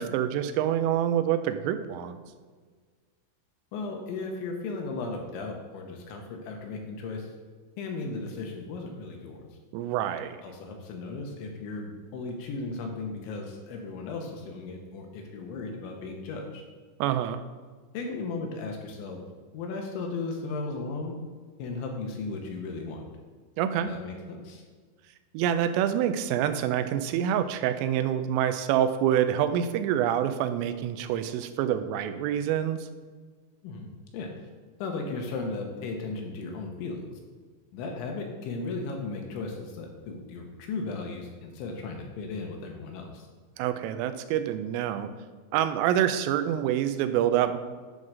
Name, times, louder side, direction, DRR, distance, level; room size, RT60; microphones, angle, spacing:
voice 1, 0.0-2.2 9.7-10.4 17.0-17.4 23.6-23.9 25.3-32.9 43.6-45.1 45.5-47.6, right 10 dB, 85° right, 9 dB, 3.1 m, -26 dB
voice 2, 3.7-7.3 7.8-9.4 10.4-16.6 17.9-19.2 19.5-21.2 21.6-23.0 23.8-24.6 33.6-33.9 34.1-34.5 34.8-37.0 37.7-43.3, left 3 dB, 75° left, 2 dB, 3.0 m, -36 dB
10.5 x 3.9 x 6.2 m, 1.5 s
omnidirectional pair, 5.9 m